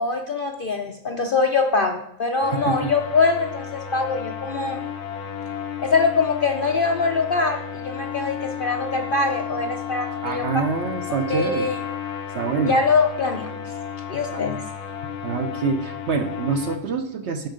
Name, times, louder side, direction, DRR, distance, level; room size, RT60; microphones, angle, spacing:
voice 1, 0.0-4.8 5.8-10.4 11.3-11.8 12.6-13.5 14.1-14.7, left 4 dB, 55° left, 4 dB, 0.6 m, -23 dB
sound 1, 2.4-16.8, left 8 dB, 85° left, 1.3 m, -33 dB
voice 2, 2.5-2.9 10.2-11.7 12.3-12.8 14.3-14.4 15.2-17.5, right 5 dB, 60° right, 7 dB, 0.8 m, -26 dB
9.1 x 6.3 x 5.0 m, 0.76 s
omnidirectional pair, 1.6 m